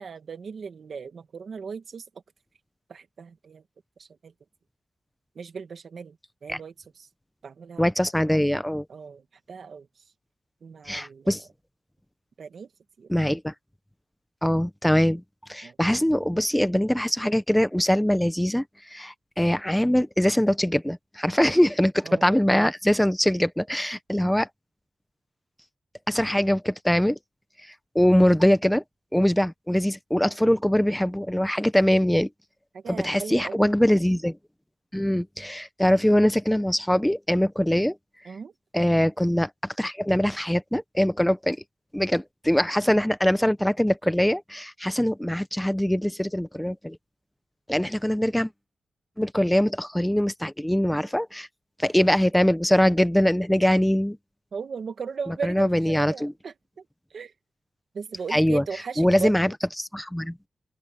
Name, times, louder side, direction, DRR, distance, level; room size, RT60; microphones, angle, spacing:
voice 1, 0.0-2.0 2.9-3.6 4.0-4.3 5.4-6.2 6.4-7.1 7.4-7.9 8.9-9.2 9.5-9.9 10.6-11.3 12.4-12.7 13.0-13.1 15.6-15.8 22.0-22.4 32.7-33.6 38.3-38.5 54.5-56.5 57.1-57.3 57.9-59.4, right 5 dB, 65° right, 1.9 m, -37 dB
voice 2, 7.8-8.8 10.9-11.4 13.1-13.5 14.4-15.2 15.5-18.6 18.9-24.5 26.1-27.2 27.9-28.8 29.1-32.3 32.9-34.4 34.9-38.0 38.7-41.6 41.9-47.0 47.7-48.5 49.2-51.5 51.8-54.2 55.4-56.3 58.3-58.6 59.0-60.3, equal, 5° left, 0.9 m, -22 dB
open air
wide cardioid pair, 115°, 0 cm